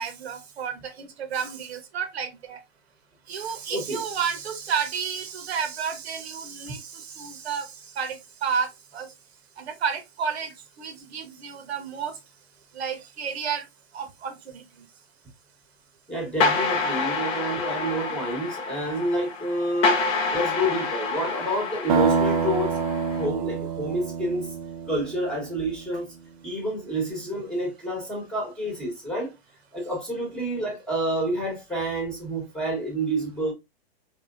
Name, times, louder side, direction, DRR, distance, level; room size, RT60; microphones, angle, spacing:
voice 1, 0.0-2.6 3.3-9.1 9.6-10.5 10.8-12.2 12.7-13.6 13.9-14.8, right 6 dB, 80° right, 1.2 m, -31 dB
voice 2, 3.7-4.0 16.1-20.0 20.3-22.8 23.2-24.5 24.9-26.1 26.4-29.3 29.7-33.5, right 1 dB, 5° left, 1.1 m, -28 dB
sound 1, 16.4-23.3, left 4 dB, 20° left, 0.5 m, -28 dB
sound 2, 21.9-25.7, right 5 dB, 50° right, 0.5 m, -26 dB
4.3 x 3.4 x 2.4 m
hypercardioid pair, 155°, 32 cm